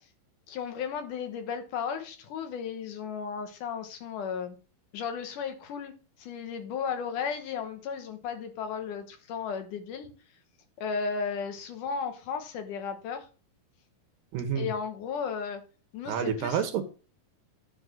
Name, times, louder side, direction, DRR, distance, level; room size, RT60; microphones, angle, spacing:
voice 1, 0.5-4.6 4.9-5.9 6.2-10.1 10.8-13.3 14.6-15.6 15.9-16.6, left 6 dB, 70° left, 7 dB, 2.5 m, -34 dB
voice 2, 14.3-14.7 16.1-16.9, right 8 dB, 80° right, 7 dB, 2.8 m, -29 dB
10.0 x 4.0 x 6.1 m, 0.36 s
omnidirectional pair, 3.9 m